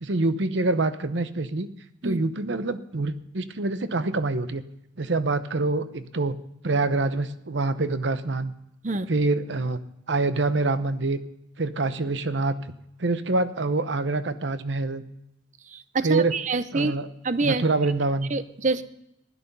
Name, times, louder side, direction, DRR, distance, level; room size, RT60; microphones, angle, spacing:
voice 1, 0.0-1.7 2.0-4.6 5.0-6.3 6.6-8.5 9.1-9.8 10.1-11.2 11.6-12.5 13.0-15.0 16.0-16.3 16.7-17.1 17.4-18.3, right 3 dB, 70° right, 12 dB, 0.9 m, -25 dB
voice 2, 15.7-16.9 17.2-17.6 18.3-18.8, right 3 dB, 40° right, 13 dB, 0.7 m, -26 dB
16.5 x 11.5 x 5.4 m, 0.82 s
head